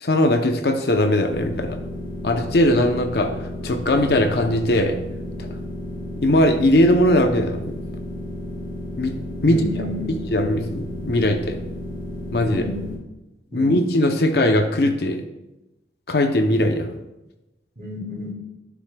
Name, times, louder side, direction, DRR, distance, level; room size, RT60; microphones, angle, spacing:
voice 1, 0.0-1.8 2.2-3.3 3.6-5.0 5.4-5.5 6.2-7.8 9.0-9.2 9.4-9.6 10.3-11.6 12.3-12.6 13.5-15.2 16.1-16.9, left 1 dB, 60° left, 6 dB, 0.6 m, -19 dB
sound 1, 1.3-12.9, left 1 dB, 25° left, 1.4 m, -33 dB
voice 2, 9.4-10.2 12.4-12.8 13.5-13.8 17.8-18.3, left 1 dB, 50° right, -10 dB, 2.6 m, -30 dB
11.5 x 6.1 x 2.2 m, 0.97 s
head